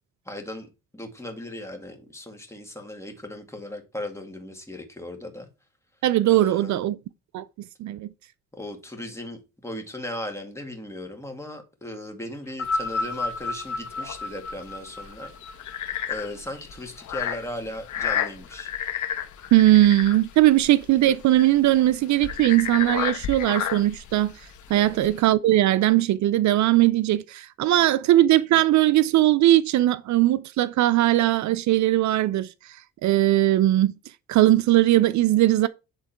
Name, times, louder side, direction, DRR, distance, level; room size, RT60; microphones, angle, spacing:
voice 1, 0.3-0.7 0.9-5.5 6.3-6.8 8.5-15.3 16.1-18.7 24.7-25.0, left 1 dB, 10° left, 2.2 m, -37 dB
voice 2, 6.0-7.0 7.3-7.4 7.8-8.1 19.5-24.3 24.7-32.5 33.0-33.9 34.3-35.7, right 14 dB, 70° right, 0.5 m, -19 dB
sound 1, 12.5-17.0 17.9-18.0, left 3 dB, 60° left, 1.0 m, -32 dB
sound 2, 12.6-25.2, left 9 dB, 75° left, 1.3 m, -32 dB
9.7 x 3.7 x 4.5 m
cardioid pair, 90°, 30 cm